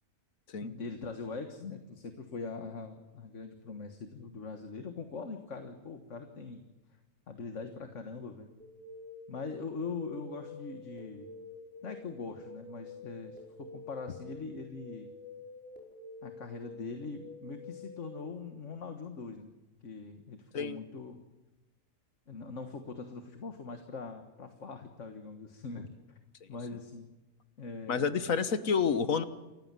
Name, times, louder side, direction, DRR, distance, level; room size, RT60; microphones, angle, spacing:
voice 1, 0.6-6.6 7.3-8.5 9.3-11.3 11.8-15.1 16.2-19.5 19.8-21.2 22.3-25.9 26.5-27.1 27.6-28.0, left 4 dB, 65° left, 6 dB, 1.8 m, -42 dB
sound 1, 8.6-18.2, left 2 dB, 5° left, 5.2 m, -49 dB
voice 2, 27.9-29.2, left 6 dB, 85° left, 12 dB, 1.7 m, -29 dB
29.0 x 15.0 x 7.6 m, 1.1 s
omnidirectional pair, 1.4 m